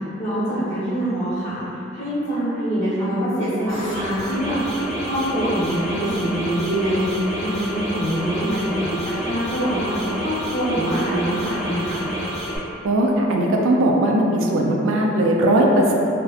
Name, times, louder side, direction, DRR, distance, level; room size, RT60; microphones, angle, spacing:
voice 1, 0.2-1.6 1.9-4.6 5.0-12.0, equal, 35° left, -14 dB, 1.1 m, -24 dB
sound 1, 3.7-12.6, equal, 20° left, 0.8 m, -29 dB
voice 2, 12.8-15.9, right 1 dB, 90° right, 0 dB, 0.3 m, -18 dB
2.7 x 2.1 x 2.4 m, 2.9 s
head